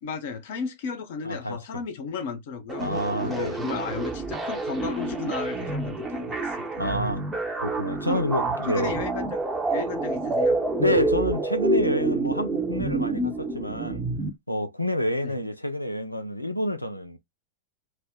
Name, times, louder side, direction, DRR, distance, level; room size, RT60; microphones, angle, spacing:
voice 1, 0.0-2.9 3.2-6.8 8.1-8.2 8.6-9.3 9.7-10.6 15.2-15.3, left 5 dB, 55° left, 0.7 m, -34 dB
voice 2, 1.2-1.8 2.8-3.6 6.8-7.2 7.6-9.0 10.8-14.0 14.5-17.2, left 1 dB, 90° left, 0.5 m, -28 dB
sound 1, 2.7-14.3, right 2 dB, 15° right, 0.7 m, -28 dB
2.4 x 2.1 x 3.7 m
figure-of-eight pair, 90°, 0 cm